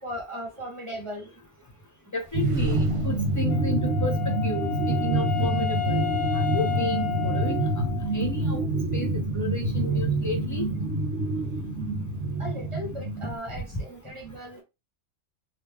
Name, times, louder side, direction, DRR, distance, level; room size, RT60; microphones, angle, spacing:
voice 1, 0.0-1.3 12.4-14.6, equal, 25° right, 1.3 m, -37 dB
voice 2, 2.1-4.7 5.0-6.1 6.5-7.6 8.1-8.6 8.9-9.1 9.3-10.6 13.7-13.8, left 1 dB, 20° left, 0.7 m, -32 dB
sound 1, 2.2-5.1, right 1 dB, 45° right, 0.4 m, -41 dB
sound 2, 2.3-13.4, right 2 dB, 70° right, 1.1 m, -26 dB
Wind instrument woodwind instrument, 3.5-8.3, left 14 dB, 60° left, 0.5 m, -32 dB
3.0 x 2.5 x 3.4 m
omnidirectional pair, 1.2 m